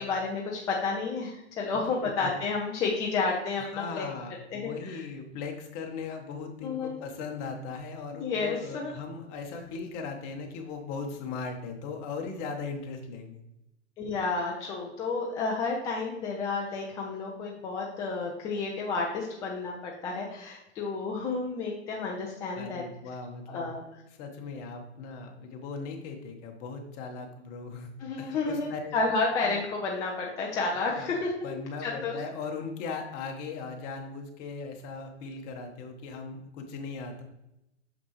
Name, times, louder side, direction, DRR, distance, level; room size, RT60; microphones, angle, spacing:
voice 1, 0.0-4.0 4.5-5.0 6.6-7.0 8.2-8.9 14.0-22.8 23.5-23.8 28.0-31.3 31.8-32.2, left 4 dB, 10° left, -1 dB, 0.3 m, -31 dB
voice 2, 3.6-13.4 22.5-23.7 24.1-28.9 29.4-29.5 30.9-31.1 31.4-37.2, left 4 dB, 35° left, 4 dB, 1.2 m, -38 dB
6.3 x 5.8 x 3.2 m, 0.87 s
hypercardioid pair, 120°, 35 cm